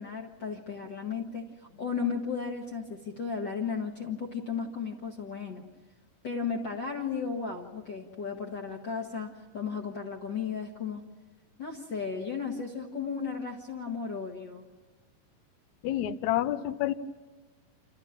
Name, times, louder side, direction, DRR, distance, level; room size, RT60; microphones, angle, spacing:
voice 1, 0.0-5.7 6.2-11.0 11.6-14.6, left 5 dB, 45° left, 1 dB, 1.5 m, -35 dB
voice 2, 15.8-16.9, left 13 dB, 75° left, 12 dB, 1.8 m, -28 dB
28.0 x 14.0 x 8.8 m, 1.3 s
omnidirectional pair, 4.1 m